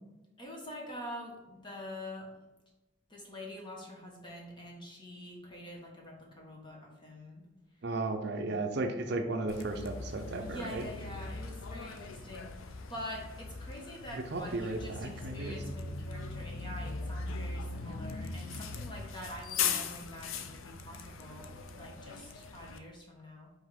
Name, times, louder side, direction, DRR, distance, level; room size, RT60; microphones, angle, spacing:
voice 1, 0.4-2.3 3.1-7.4 10.4-23.5, left 1 dB, 25° left, -1 dB, 1.2 m, -45 dB
voice 2, 7.8-10.8 14.1-16.0, right 2 dB, 55° right, 5 dB, 0.6 m, -35 dB
Bus, 9.5-22.8, left 5 dB, 85° left, 0.5 m, -40 dB
5.3 x 3.6 x 5.2 m, 1.0 s
head